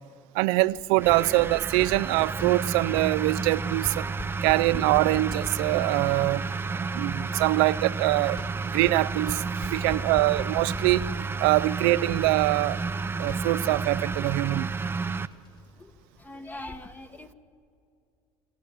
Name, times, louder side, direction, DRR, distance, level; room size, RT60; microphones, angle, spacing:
voice 1, 0.3-4.1 4.4-6.5 6.9-8.4 8.7-11.1 11.4-12.8 13.2-14.7, right 19 dB, 80° right, 0.5 m, -24 dB
sound 1, 0.6-16.8, left 3 dB, 35° left, 4.6 m, -45 dB
sound 2, 1.0-15.3, right 4 dB, 20° right, 0.7 m, -31 dB
voice 2, 9.8-10.1 15.8-15.9 16.2-17.3, left 1 dB, 15° left, 1.4 m, -42 dB
26.0 x 14.0 x 8.6 m
supercardioid pair, 90°, 11 cm